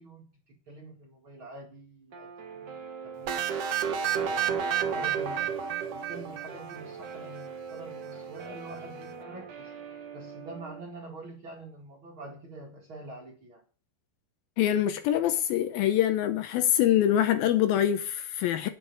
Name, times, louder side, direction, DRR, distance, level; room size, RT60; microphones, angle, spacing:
voice 1, 0.0-3.7 4.8-5.5 5.9-9.7 10.1-13.6, right 2 dB, 40° right, 2.1 m, -46 dB
Guitar, 2.1-10.8, right 5 dB, 60° right, 1.1 m, -43 dB
sound 1, 3.3-7.0, right 8 dB, 85° right, 1.3 m, -30 dB
voice 2, 14.6-18.7, left 11 dB, 75° left, 2.4 m, -24 dB
8.9 x 7.4 x 7.0 m
omnidirectional pair, 4.5 m